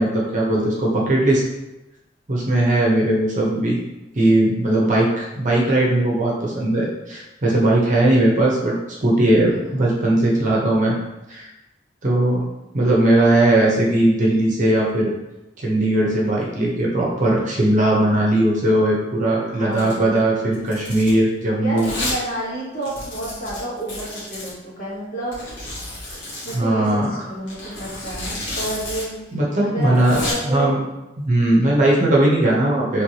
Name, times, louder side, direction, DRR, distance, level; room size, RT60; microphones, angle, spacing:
voice 1, 0.0-1.4 2.3-3.8 4.1-8.7 9.0-10.9 11.3-11.5 12.0-12.4 12.7-15.1 15.6-21.9 26.5-27.2 29.3-30.2 30.4-30.8 31.2-33.0, right 1 dB, 45° right, -3 dB, 0.8 m, -18 dB
voice 2, 9.5-9.9 19.4-20.2 21.6-25.4 26.4-29.2 29.6-30.7 31.6-31.8, right 1 dB, 50° left, -6 dB, 1.2 m, -30 dB
Domestic sounds home sounds, 19.7-20.0 20.5-21.2 21.8-22.2 22.5-22.6 22.8-24.5 25.3-26.6 27.5-29.0 29.3-29.4 29.8-30.3, left 1 dB, 85° left, 1.4 m, -31 dB
3.2 x 3.1 x 2.8 m, 0.99 s
head